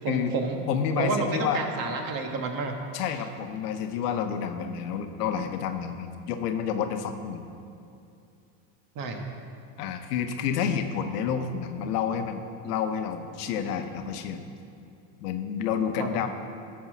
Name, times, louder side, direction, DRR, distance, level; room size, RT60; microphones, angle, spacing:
voice 1, 0.0-0.6 1.0-2.7 8.9-9.2 16.0-16.1, right 4 dB, 45° right, 3 dB, 1.5 m, -30 dB
voice 2, 0.7-1.6 2.9-7.4 9.8-14.5 15.2-16.3, left 7 dB, 85° left, 7 dB, 1.0 m, -29 dB
13.5 x 4.7 x 6.1 m, 2.6 s
supercardioid pair, 110°, 46 cm